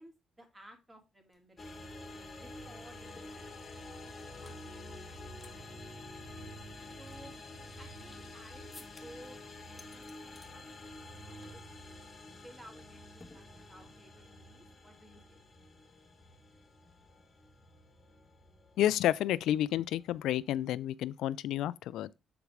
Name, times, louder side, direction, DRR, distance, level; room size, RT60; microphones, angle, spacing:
voice 1, 0.0-1.8 2.4-3.5 3.7-5.9 7.0-7.3 7.7-9.4 9.7-10.8 11.2-11.6 12.4-13.0 13.3-15.4, equal, 20° right, 2.5 m, -57 dB
sound 1, 1.3-1.4 1.6-4.6 5.1-5.5 5.8-5.9 6.4-8.3 8.7-9.3 9.7-10.5 10.9-11.2 11.4-11.7 12.0-12.2 13.2-14.0, left 2 dB, 15° left, 1.5 m, -58 dB
sound 2, 1.6-20.7, left 1 dB, 35° left, 1.3 m, -49 dB
voice 2, 18.8-22.2, left 12 dB, 85° left, 0.3 m, -30 dB
7.0 x 4.0 x 4.7 m
cardioid pair, 90°, 0 cm